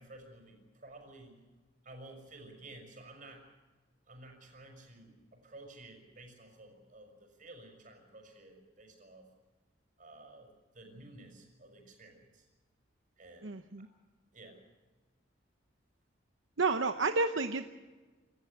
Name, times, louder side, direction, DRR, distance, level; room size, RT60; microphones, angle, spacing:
voice 1, 0.0-1.3 1.8-3.5 4.1-9.3 10.0-12.4 13.2-13.5 13.8-13.9 14.3-14.6, right 2 dB, 45° right, 3 dB, 6.1 m, -53 dB
voice 2, 13.4-13.9 16.6-17.7, right 3 dB, 75° right, 7 dB, 0.9 m, -30 dB
27.5 x 14.0 x 8.2 m, 1.3 s
head